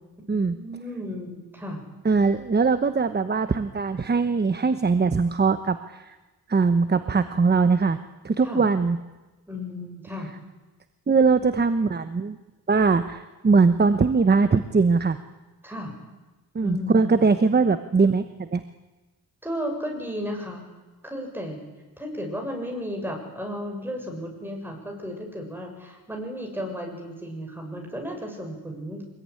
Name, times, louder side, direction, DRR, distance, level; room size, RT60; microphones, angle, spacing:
voice 1, 0.3-1.8 8.4-8.6 9.5-10.3 15.6-16.0 16.6-17.2 19.4-20.6 21.0-21.6 22.0-29.0, equal, 5° right, 1 dB, 7.0 m, -34 dB
voice 2, 2.0-6.2 6.5-8.0 8.2-9.0 11.1-12.4 12.7-15.2 16.5-18.6, right 4 dB, 25° right, 10 dB, 1.0 m, -21 dB
24.5 x 21.0 x 9.8 m, 1.2 s
wide cardioid pair, 115°, 39 cm